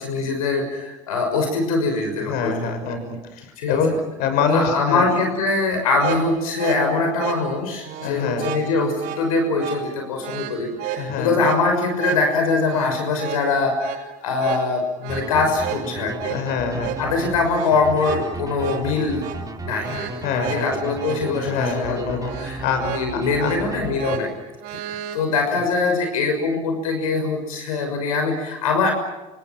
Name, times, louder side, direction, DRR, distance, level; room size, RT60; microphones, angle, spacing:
voice 1, 0.0-3.0 3.6-3.8 4.5-16.4 17.0-19.3 19.6-24.3 24.7-28.9, left 3 dB, 85° left, 4 dB, 6.1 m, -23 dB
voice 2, 2.2-5.0 8.0-8.5 10.9-11.5 16.3-17.0 19.9-20.7 21.4-23.5, left 5 dB, 65° left, 7 dB, 6.2 m, -25 dB
sound 1, 5.8-25.2, right 9 dB, 65° right, 7.2 m, -33 dB
sound 2, 15.1-24.4, right 3 dB, 20° right, 4.1 m, -34 dB
29.0 x 27.0 x 6.2 m, 1.1 s
hypercardioid pair, 80°, 18 cm